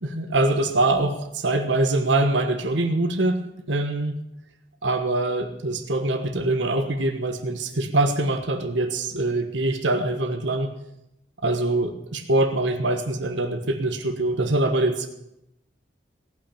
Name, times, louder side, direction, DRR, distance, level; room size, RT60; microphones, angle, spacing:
voice 1, 0.0-3.4 3.7-4.1 4.8-10.7 11.4-15.1, right 2 dB, 80° right, 6 dB, 1.3 m, -23 dB
18.0 x 6.1 x 8.6 m, 0.84 s
head